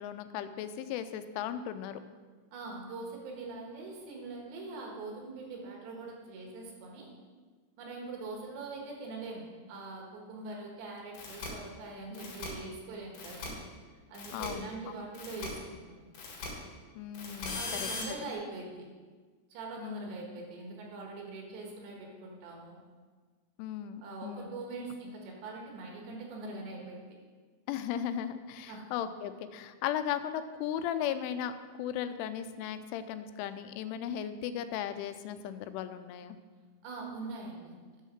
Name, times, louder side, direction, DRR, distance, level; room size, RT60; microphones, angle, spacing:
voice 1, 0.0-2.0 14.3-14.7 17.0-17.9 19.8-20.2 23.6-24.5 27.7-31.5 31.8-36.4, left 9 dB, 90° left, 11 dB, 3.1 m, -36 dB
voice 2, 2.5-7.1 7.8-13.5 14.1-16.1 17.5-18.9 19.5-22.8 24.0-27.0 28.7-28.9 36.8-37.7, right 3 dB, 70° right, 0 dB, 3.6 m, -43 dB
sound 1, 11.1-11.5 12.1-12.5 13.1-13.5 14.1-14.5 15.1-15.5 16.1-16.5 17.1-18.0, left 4 dB, 70° left, 4.0 m, -39 dB
9.2 x 6.4 x 6.5 m, 1.5 s
omnidirectional pair, 5.4 m